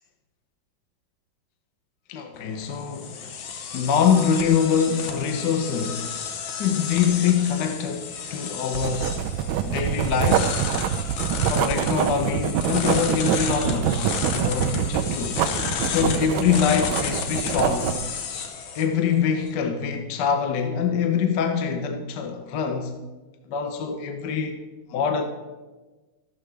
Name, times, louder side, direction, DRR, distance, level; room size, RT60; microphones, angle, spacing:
voice 1, 2.1-3.3 3.7-6.1 6.6-9.1 9.6-10.6 11.5-15.4 15.8-18.0 18.7-22.9 23.5-24.6 24.9-25.2, left 7 dB, 65° left, 1.3 m, -24 dB
sound 1, 2.3-19.5, left 6 dB, 90° left, 1.8 m, -32 dB
Writing, 8.7-18.1, right 10 dB, 80° right, 1.3 m, -25 dB
13.5 x 11.5 x 3.3 m
omnidirectional pair, 2.2 m